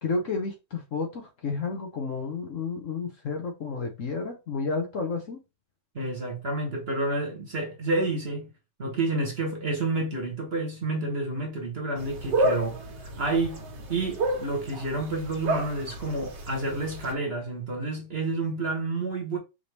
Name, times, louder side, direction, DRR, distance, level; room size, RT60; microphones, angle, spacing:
voice 1, 0.0-5.4, left 4 dB, 55° left, 1.1 m, -31 dB
voice 2, 5.9-8.5 8.8-13.6 13.9-19.4, right 2 dB, 40° right, 1.2 m, -29 dB
sound 1, 12.0-17.1, right 1 dB, 80° right, 1.7 m, -31 dB
5.0 x 2.9 x 3.3 m
omnidirectional pair, 1.9 m